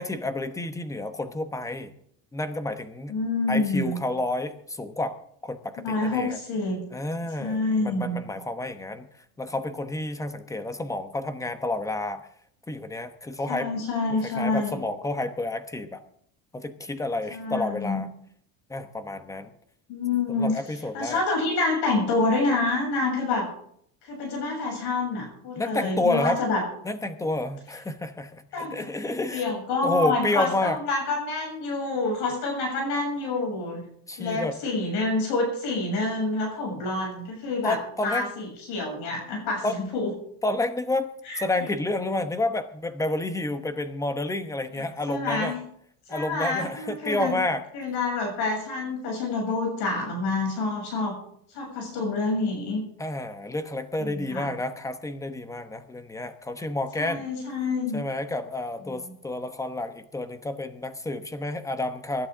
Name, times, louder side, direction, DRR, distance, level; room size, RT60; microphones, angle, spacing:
voice 1, 0.0-2.0 2.3-3.1 3.5-5.2 5.4-6.4 6.9-9.1 9.4-12.2 12.7-13.7 14.2-16.0 16.5-18.1 18.7-19.5 20.4-21.2 25.6-26.4 26.8-29.5 29.8-30.8 34.1-34.6 37.6-38.3 39.6-39.8 40.4-41.1 41.4-45.5 46.1-47.6 53.0-57.3 57.9-62.3, left 2 dB, 10° left, 9 dB, 0.9 m, -30 dB
voice 2, 3.1-4.0 5.8-6.9 7.4-8.2 13.5-14.8 17.3-18.0 19.9-20.6 20.9-23.5 24.0-26.6 28.5-28.9 29.3-33.8 34.2-37.8 38.0-40.1 41.2-41.4 45.1-45.6 46.1-47.4 47.7-51.2 51.5-52.8 54.0-54.5 57.0-58.0 58.8-59.2, left 3 dB, 70° left, 1 dB, 7.2 m, -27 dB
24.0 x 12.0 x 3.7 m, 0.67 s
cardioid pair, 150°, 42 cm